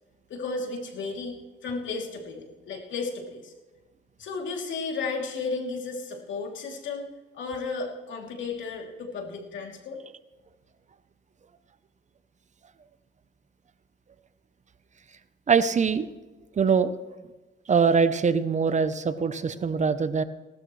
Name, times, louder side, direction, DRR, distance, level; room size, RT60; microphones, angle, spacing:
voice 1, 0.3-1.4 1.6-3.5 4.2-7.1 7.3-10.0, left 4 dB, 70° left, 1 dB, 3.1 m, -33 dB
voice 2, 15.5-16.1 16.6-16.9 17.7-20.2, right 5 dB, 35° right, 13 dB, 0.8 m, -23 dB
18.0 x 12.5 x 3.3 m, 1.2 s
cardioid pair, 90°, 20 cm